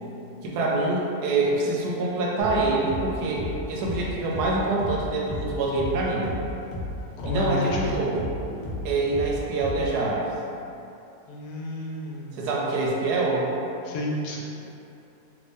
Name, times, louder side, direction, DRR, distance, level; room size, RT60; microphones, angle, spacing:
voice 1, 0.4-6.3 7.3-8.3 8.8-10.3 12.3-13.5, right 2 dB, 80° right, -3 dB, 1.2 m, -25 dB
sound 1, 2.4-10.1, left 1 dB, 60° left, 0.6 m, -34 dB
voice 2, 7.2-7.9 11.3-12.4 13.8-14.4, left 1 dB, 80° left, -3 dB, 1.1 m, -31 dB
2.9 x 2.6 x 3.4 m, 2.8 s
omnidirectional pair, 1.7 m